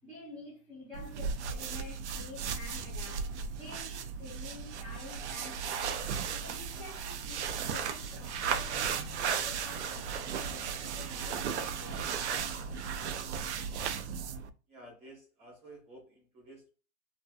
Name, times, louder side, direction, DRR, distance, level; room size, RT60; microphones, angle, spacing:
voice 1, 0.0-13.1, left 2 dB, 5° left, 0.6 m, -50 dB
sound 1, 0.9-14.5, right 7 dB, 55° right, 0.5 m, -36 dB
sound 2, 7.2-13.0, left 4 dB, 70° left, 0.8 m, -52 dB
voice 2, 14.7-16.7, right 1 dB, 15° right, 0.9 m, -52 dB
2.5 x 2.1 x 2.3 m
hypercardioid pair, 160°, 42 cm